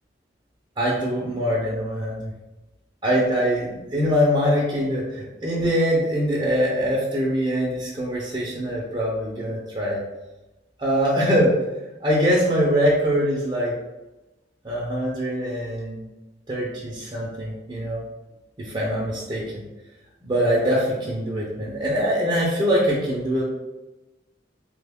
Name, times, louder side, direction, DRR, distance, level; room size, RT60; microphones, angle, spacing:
voice 1, 0.8-2.3 3.0-10.0 10.8-11.6 12.0-13.8 14.6-16.0 16.5-18.0 18.6-19.6 20.2-23.4, equal, 25° right, -5 dB, 0.5 m, -23 dB
3.2 x 2.2 x 3.4 m, 1.1 s
head